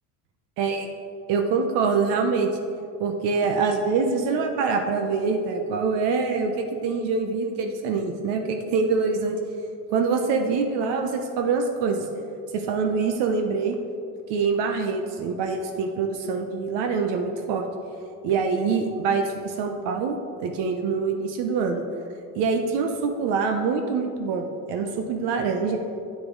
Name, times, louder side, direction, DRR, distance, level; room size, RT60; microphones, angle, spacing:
voice 1, 0.6-0.9 1.3-2.5 3.0-9.4 9.9-12.1 12.5-13.8 14.3-17.6 18.2-21.8 22.4-25.8, right 5 dB, 75° right, 4 dB, 0.9 m, -25 dB
9.5 x 8.5 x 3.8 m, 2.5 s
cardioid pair, 130°, 42 cm